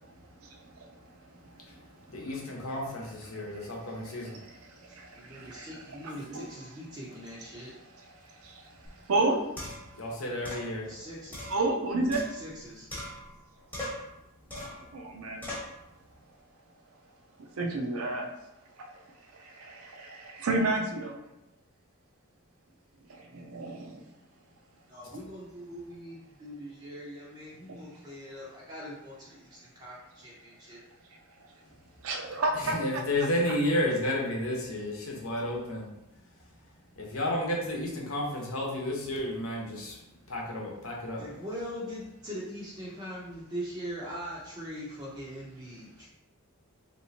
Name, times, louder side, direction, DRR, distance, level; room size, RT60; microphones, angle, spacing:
voice 1, 0.2-6.4 7.5-9.4 11.5-12.3 14.5-15.4 17.4-18.3 18.7-21.2 23.1-24.1 27.7-28.0 31.1-31.6 32.0-33.0 33.5-33.6, right 2 dB, 70° right, 2 dB, 0.5 m, -34 dB
voice 2, 2.1-4.4 9.9-10.9 32.7-35.9 37.0-40.0 40.3-41.3, left 1 dB, 70° left, -2 dB, 0.9 m, -31 dB
voice 3, 4.9-7.9 10.8-11.4 12.3-12.9 24.9-30.8 41.2-46.1, equal, 20° right, -6 dB, 0.5 m, -42 dB
sound 1, 8.9-9.0 9.6-10.0 10.5-10.7 11.3-12.6 12.9-13.4 13.7-14.1 14.5-14.9 15.4-15.8, left 1 dB, 10° left, 0.9 m, -40 dB
3.3 x 2.8 x 2.8 m, 0.88 s
head